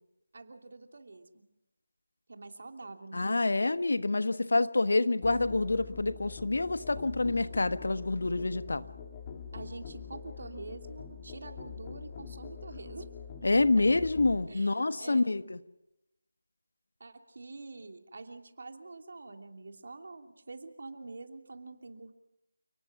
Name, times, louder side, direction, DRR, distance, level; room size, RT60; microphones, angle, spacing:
voice 1, 0.3-1.5 2.3-3.4 9.5-13.1 14.5-15.3 17.0-22.1, right 3 dB, 55° right, 5 dB, 2.9 m, -46 dB
voice 2, 3.1-8.8 13.4-15.6, left 2 dB, 60° left, 12 dB, 1.3 m, -27 dB
Musical instrument, 5.2-14.5, left 6 dB, 25° left, 2.5 m, -44 dB
30.0 x 19.0 x 6.0 m, 0.90 s
figure-of-eight pair, 160°, 0 cm